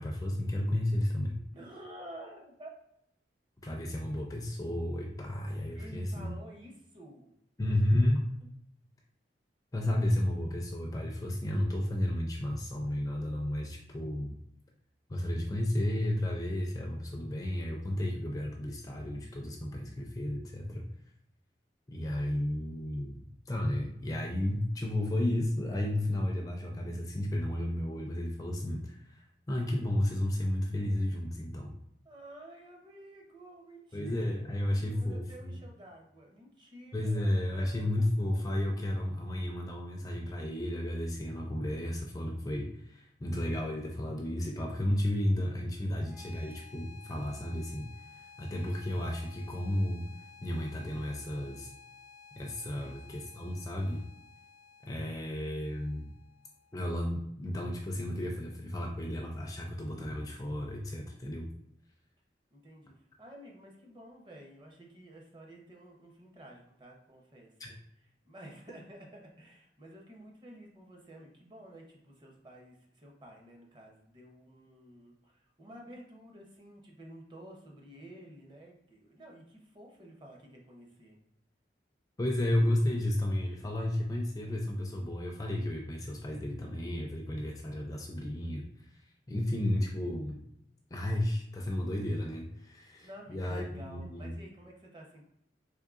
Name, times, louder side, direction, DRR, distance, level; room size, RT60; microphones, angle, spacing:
voice 1, 0.0-1.4 3.6-6.3 7.6-8.3 9.7-14.3 15.1-20.9 21.9-31.7 33.9-35.6 36.9-50.1 50.4-51.7 52.3-54.0 54.8-56.1 56.7-61.5 67.6-67.7 82.2-90.4 90.9-94.3, left 1 dB, 20° left, 1 dB, 0.4 m, -32 dB
voice 2, 1.5-2.7 5.7-7.3 8.4-8.5 32.0-34.1 34.7-37.9 52.8-53.1 62.5-67.8 68.2-81.2 92.8-95.2, right 1 dB, 25° right, 0 dB, 0.7 m, -51 dB
sound 1, 45.9-56.9, left 5 dB, 75° right, 1.1 m, -54 dB
3.6 x 3.3 x 2.4 m, 0.76 s
head